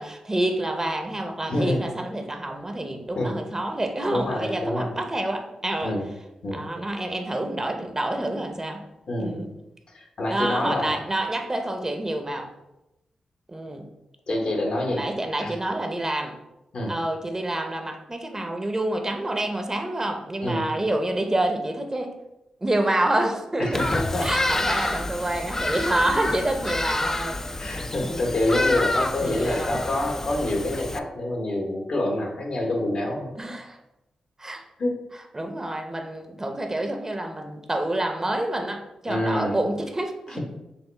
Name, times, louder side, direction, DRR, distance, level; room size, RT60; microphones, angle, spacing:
voice 1, 0.0-5.9 6.5-8.8 9.2-9.5 10.3-12.5 13.5-13.9 14.9-16.3 16.9-22.1 22.6-23.9 24.2-27.7 28.0-28.3 29.2-29.8 33.4-33.8 34.4-34.6 35.3-40.4, right 1 dB, 25° right, 4 dB, 0.6 m, -28 dB
voice 2, 1.5-1.8 3.2-3.3 4.1-4.9 5.8-6.0 6.4-6.6 9.1-9.4 9.9-10.9 14.3-15.0 15.4-15.5 16.7-16.9 20.4-20.7 23.6-24.3 25.5-25.8 27.6-33.3 34.8-34.9 39.1-39.6 40.3-40.4, left 1 dB, 65° left, 0 dB, 1.0 m, -26 dB
Bird vocalization bird call bird song, 23.7-31.0, left 2 dB, 20° left, 0.3 m, -28 dB
5.6 x 2.2 x 3.2 m, 0.93 s
supercardioid pair, 40°, 2 cm